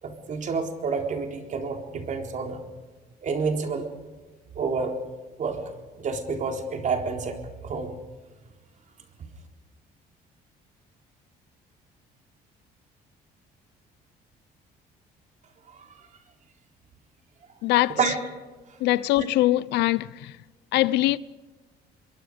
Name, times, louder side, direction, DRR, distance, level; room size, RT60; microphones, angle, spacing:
voice 1, 0.0-2.6 3.2-3.9 4.5-5.0 5.4-5.6 6.0-8.0 15.7-16.1 18.0-18.2 18.7-18.8 19.2-19.3, right 5 dB, 45° right, 3.9 m, -29 dB
voice 2, 17.6-18.0 18.8-20.3 20.7-21.2, left 16 dB, 85° left, 0.7 m, -22 dB
27.0 x 22.0 x 5.1 m
cardioid pair, 110°, 17 cm